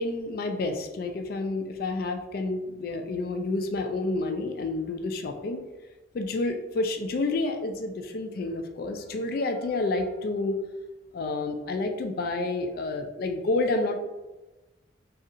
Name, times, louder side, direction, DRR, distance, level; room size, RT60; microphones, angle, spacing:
voice 1, 0.0-5.6 6.1-10.6 11.1-13.9, left 2 dB, 55° left, 5 dB, 0.3 m, -29 dB
2.7 x 2.6 x 2.5 m, 1.1 s
head